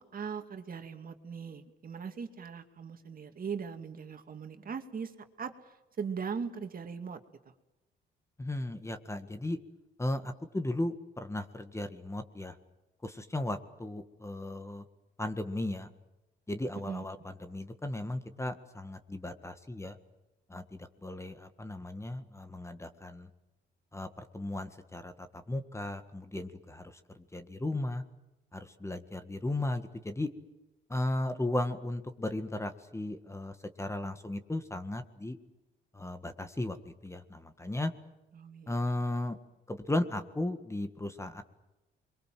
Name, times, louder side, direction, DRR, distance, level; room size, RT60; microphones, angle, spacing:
voice 1, 0.0-5.1 5.4-5.5 6.0-7.2 16.9-17.1 38.3-38.7, right 6 dB, 45° right, 6 dB, 2.5 m, -39 dB
voice 2, 8.4-9.6 10.0-12.5 13.0-14.8 15.2-15.9 16.5-20.0 20.5-23.3 23.9-28.0 28.5-30.3 30.9-35.4 35.9-37.9 38.7-39.4 39.7-41.4, left 1 dB, 15° left, 9 dB, 1.8 m, -36 dB
28.5 x 23.0 x 7.7 m, 1.0 s
cardioid pair, 90°, 20 cm